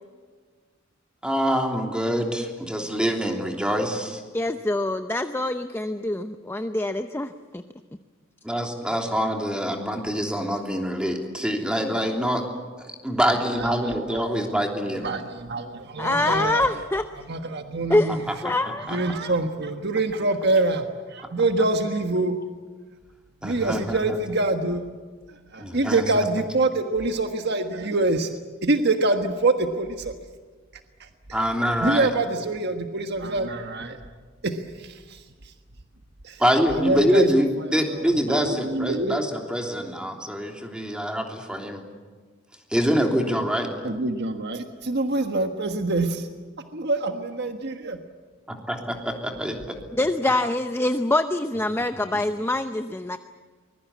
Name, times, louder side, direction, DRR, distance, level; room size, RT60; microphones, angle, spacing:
voice 1, 1.2-4.2 8.4-12.4 12.8-15.1 18.6-19.2 23.4-24.2 25.6-26.3 31.3-32.1 36.4-41.8 42.7-43.7 48.5-49.8 51.8-51.9 52.1-52.2, equal, 5° right, 2 dB, 3.2 m, -25 dB
voice 2, 4.3-7.6 16.0-17.1 17.9-18.1 18.4-19.2 50.0-53.2, left 2 dB, 10° left, 8 dB, 0.7 m, -25 dB
voice 3, 13.6-14.2 15.0-16.7 17.2-18.2 18.8-22.4 23.4-24.8 25.3-28.3 28.6-30.1 31.0-31.1 31.8-34.0 34.4-35.5 36.2-36.4 36.8-37.3 37.7-39.2 43.8-46.3 46.7-48.0, right 2 dB, 60° right, 6 dB, 1.4 m, -25 dB
24.5 x 22.0 x 8.4 m, 1.5 s
head